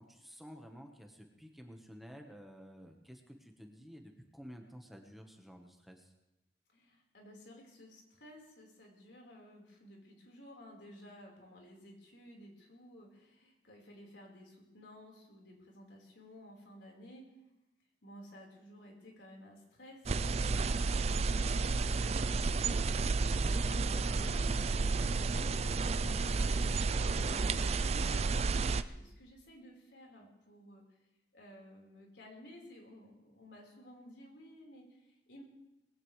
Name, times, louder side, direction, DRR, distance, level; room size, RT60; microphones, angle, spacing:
voice 1, 0.0-6.1, equal, ahead, 2 dB, 1.2 m, -52 dB
voice 2, 6.7-17.2 18.0-26.4 27.1-28.7 28.9-30.8 31.3-35.4, equal, 90° left, -1 dB, 4.5 m, -55 dB
sound 1, 20.1-28.8, right 4 dB, 35° right, 0.4 m, -31 dB
20.5 x 16.5 x 3.3 m, 0.95 s
head